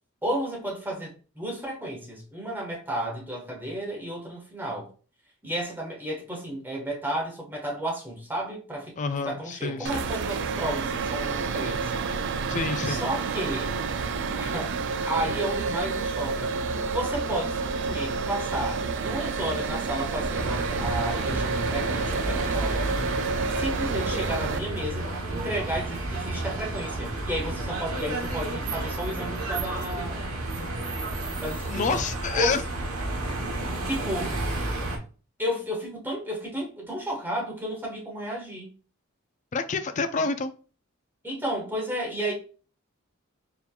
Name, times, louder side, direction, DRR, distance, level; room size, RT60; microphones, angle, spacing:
voice 1, 0.2-4.9 5.4-11.9 12.8-13.7 14.4-14.7 15.1-16.5 16.9-22.9 23.6-30.3 31.4-32.0 32.3-32.6 33.9-34.3 35.4-38.7 41.2-42.3, right 1 dB, 10° right, 1.4 m, -32 dB
voice 2, 9.0-10.1 12.5-13.0 31.7-32.6 39.5-40.5, left 4 dB, 35° left, 0.4 m, -28 dB
sound 1, 9.9-24.6, right 4 dB, 60° right, 0.4 m, -29 dB
sound 2, 20.3-35.0, right 2 dB, 85° right, 1.1 m, -31 dB
4.3 x 3.7 x 2.3 m
head